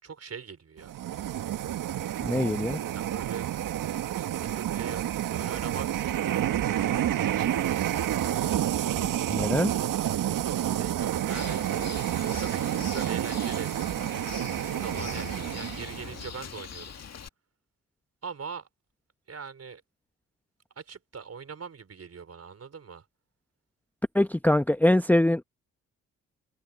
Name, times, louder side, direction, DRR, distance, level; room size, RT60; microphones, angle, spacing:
voice 1, 0.0-1.1 2.9-3.5 4.1-5.9 10.6-11.6 12.4-13.7 14.7-16.9 18.2-18.7 19.3-19.8 20.7-23.0, right 6 dB, 45° right, 5.0 m, -42 dB
sound 1, 0.8-16.2, right 11 dB, 65° right, 1.7 m, -29 dB
voice 2, 2.2-2.8 9.0-9.7 24.1-25.4, left 1 dB, 5° left, 0.9 m, -23 dB
Bird, 11.3-17.3, left 7 dB, 45° left, 2.1 m, -42 dB
hypercardioid pair, 50°, 35 cm